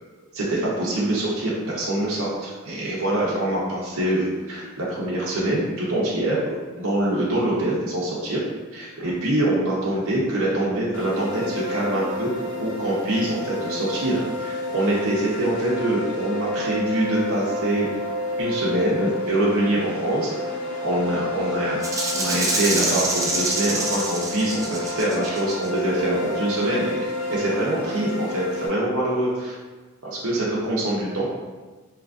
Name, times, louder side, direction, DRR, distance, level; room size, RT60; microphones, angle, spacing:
voice 1, 0.3-8.4 8.7-12.3 12.6-17.9 18.4-20.4 20.8-21.9 22.1-29.6 30.0-31.3, right 1 dB, 65° right, -5 dB, 0.7 m, -24 dB
sound 1, 10.9-28.7, left 2 dB, 75° left, 0.7 m, -30 dB
Rattle (instrument), 21.8-25.7, right 2 dB, 15° right, 0.3 m, -26 dB
2.9 x 2.4 x 3.5 m, 1.3 s
head